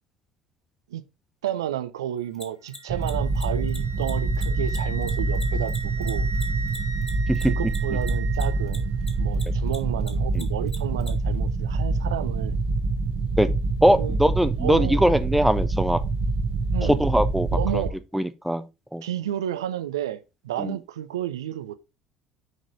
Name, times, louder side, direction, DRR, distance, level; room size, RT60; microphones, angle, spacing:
voice 1, 1.4-6.3 7.4-8.9 9.2-12.6 13.9-14.2 14.6-15.0 16.7-17.0 17.5-18.0 19.0-21.8, right 11 dB, 70° right, 0.5 m, -31 dB
Mechanisms, 2.3-9.1 9.3-11.1, left 2 dB, 15° left, 1.9 m, -40 dB
Wind instrument woodwind instrument, 2.7-8.7, right 4 dB, 45° left, 3.5 m, -38 dB
sound 1, 2.9-17.9, right 3 dB, 40° right, 1.0 m, -26 dB
voice 2, 13.8-16.0 16.8-17.5 17.7-17.8 18.1-18.6 18.9-19.0 20.6-20.8, equal, ahead, 0.7 m, -21 dB
6.2 x 4.8 x 3.8 m
figure-of-eight pair, 60°, 3 cm